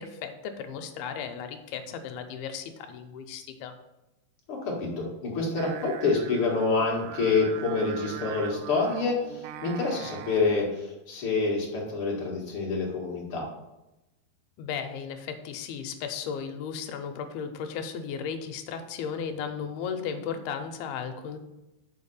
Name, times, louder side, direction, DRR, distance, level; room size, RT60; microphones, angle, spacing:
voice 1, 0.0-3.7 14.6-21.4, left 7 dB, 80° left, 6 dB, 2.5 m, -35 dB
voice 2, 4.5-13.5, left 4 dB, 50° left, -3 dB, 1.7 m, -27 dB
Singing, 5.6-10.7, right 9 dB, 85° right, 2.1 m, -41 dB
7.1 x 4.6 x 7.0 m, 0.98 s
omnidirectional pair, 4.7 m